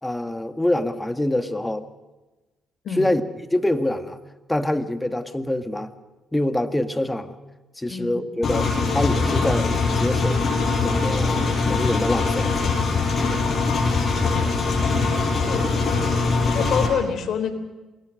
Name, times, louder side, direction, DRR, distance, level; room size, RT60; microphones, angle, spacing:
voice 1, 0.0-1.9 3.0-3.2 3.5-4.2 4.5-5.9 6.3-7.4 7.8-10.5 10.8-12.5, left 1 dB, 10° left, 9 dB, 1.8 m, -25 dB
voice 2, 7.9-8.2 13.4-14.3 15.4-15.7 16.5-17.5, left 7 dB, 65° left, 8 dB, 4.0 m, -28 dB
Engine, 8.4-16.9, left 4 dB, 45° left, 7.5 m, -22 dB
28.0 x 21.0 x 6.4 m, 1.2 s
cardioid pair, 90°, 0 cm